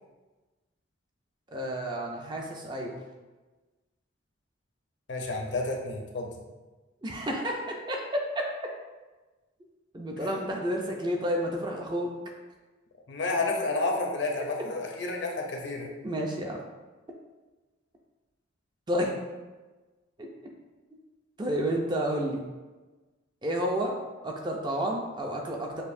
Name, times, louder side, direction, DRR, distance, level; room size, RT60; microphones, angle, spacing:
voice 1, 1.5-3.0 7.0-8.2 9.9-12.1 16.0-16.6 18.9-19.1 21.4-22.4 23.4-23.9 24.2-25.8, equal, 20° right, 0 dB, 0.5 m, -30 dB
voice 2, 5.1-6.3 10.2-10.3 13.1-15.9, left 2 dB, 60° left, 1 dB, 0.6 m, -30 dB
6.7 x 2.6 x 2.6 m, 1.2 s
head